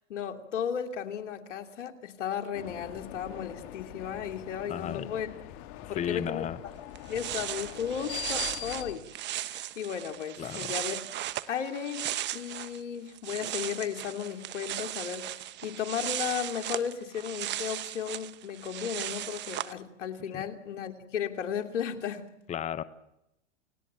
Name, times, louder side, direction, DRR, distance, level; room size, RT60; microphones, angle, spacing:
voice 1, 0.1-5.3 5.9-6.5 7.1-9.1 9.3-11.0 11.5-22.3, left 8 dB, 80° left, 5 dB, 2.9 m, -35 dB
sound 1, 2.5-9.0, left 13 dB, 50° left, 2.3 m, -42 dB
voice 2, 4.7-5.1 5.8-6.6 10.4-10.7 20.3-20.4 22.5-22.8, left 9 dB, 20° left, 15 dB, 1.0 m, -34 dB
sound 2, 6.7-6.8 6.9-12.8 13.1-19.7, right 14 dB, 30° right, 1.1 m, -37 dB
29.5 x 18.0 x 8.8 m, 0.85 s
hypercardioid pair, 125°, 36 cm